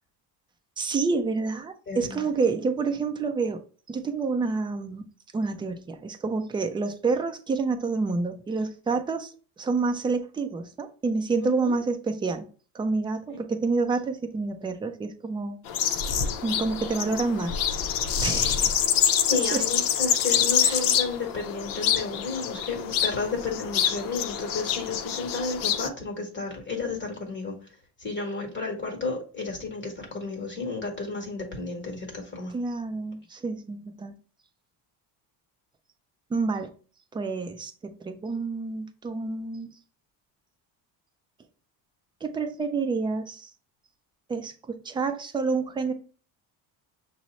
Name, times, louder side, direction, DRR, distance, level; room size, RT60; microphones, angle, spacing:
voice 1, 0.8-3.6 3.9-5.1 5.3-9.3 9.6-12.5 12.7-15.6 16.4-17.6 18.2-18.9 19.3-19.7 20.6-20.8 32.5-34.1 36.3-36.7 37.1-39.7 42.2-43.5 44.3-45.9, right 4 dB, 10° right, 0.4 m, -28 dB
voice 2, 1.9-2.2 11.4-11.8 13.3-13.4 19.3-27.6 28.0-32.5, left 4 dB, 25° left, 1.1 m, -32 dB
sound 1, 15.7-25.9, left 9 dB, 55° left, 0.6 m, -26 dB
6.0 x 2.0 x 4.0 m
cardioid pair, 130°, 41 cm